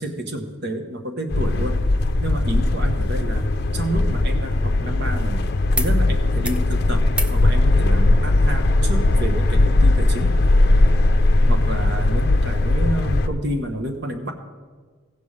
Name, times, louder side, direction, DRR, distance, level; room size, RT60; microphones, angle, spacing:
voice 1, 0.0-1.8 2.2-5.5 5.8-10.3 11.4-14.3, right 1 dB, 55° right, 6 dB, 1.1 m, -29 dB
sound 1, 1.3-13.3, left 2 dB, 50° left, 0.6 m, -18 dB
sound 2, 5.7-5.9 6.2-6.7 7.1-7.4 8.7-8.8, right 1 dB, 5° right, 0.4 m, -33 dB
15.5 x 5.4 x 6.5 m, 1.5 s
head